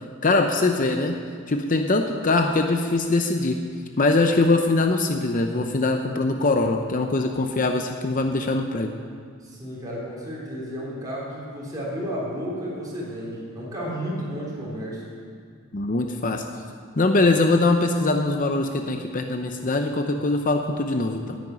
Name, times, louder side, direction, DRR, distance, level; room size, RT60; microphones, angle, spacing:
voice 1, 0.2-1.2 1.5-3.6 4.0-8.9 15.7-16.4 17.0-21.4, left 2 dB, 35° left, 5 dB, 0.7 m, -22 dB
voice 2, 9.4-15.0, equal, 15° right, -6 dB, 3.4 m, -32 dB
10.5 x 9.5 x 9.2 m, 2.1 s
head